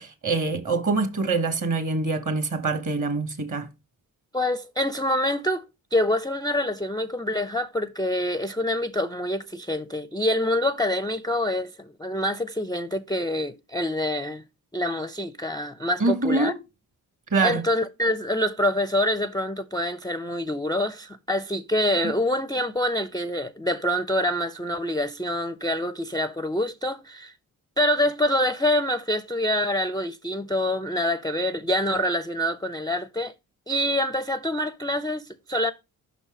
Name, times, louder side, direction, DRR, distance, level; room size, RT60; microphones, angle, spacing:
voice 1, 0.0-3.7 16.0-16.6 17.3-17.6, right 3 dB, 45° right, 1.5 m, -25 dB
voice 2, 4.3-5.6 5.9-14.4 14.7-16.5 17.4-27.3 27.8-33.3 33.7-35.7, left 1 dB, 10° left, 0.4 m, -26 dB
5.7 x 4.1 x 5.0 m
supercardioid pair, 45°, 44 cm